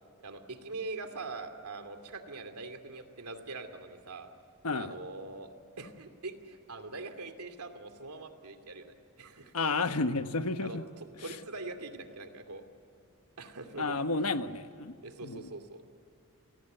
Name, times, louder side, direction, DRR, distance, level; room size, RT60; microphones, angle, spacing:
voice 1, 0.2-4.3 4.7-5.5 5.8-9.5 10.6-10.8 11.2-12.6 13.4-13.9 15.0-15.8, right 3 dB, 90° right, 7 dB, 2.6 m, -43 dB
voice 2, 9.5-10.8 13.8-14.9 15.2-15.4, left 3 dB, 75° left, 9 dB, 1.2 m, -31 dB
29.5 x 20.0 x 8.0 m, 2.6 s
head